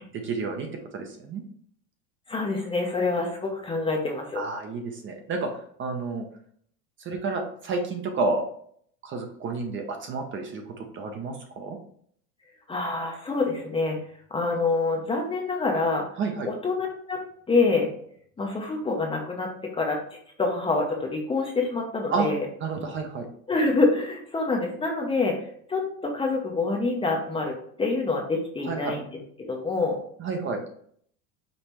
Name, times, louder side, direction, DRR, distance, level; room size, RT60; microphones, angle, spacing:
voice 1, 0.1-0.7 0.9-1.4 4.3-5.5 5.8-6.2 7.0-8.4 9.0-11.8 16.2-16.5 22.1-22.3 22.6-23.3 28.6-29.0 30.2-30.6, right 4 dB, 30° right, 4 dB, 0.7 m, -30 dB
voice 2, 2.3-4.4 12.7-14.0 14.3-16.1 16.5-17.9 18.4-20.0 20.4-22.5 23.5-29.1 29.4-30.0, left 3 dB, 15° left, 1 dB, 0.6 m, -26 dB
5.4 x 3.2 x 3.0 m, 0.62 s
supercardioid pair, 130°, 42 cm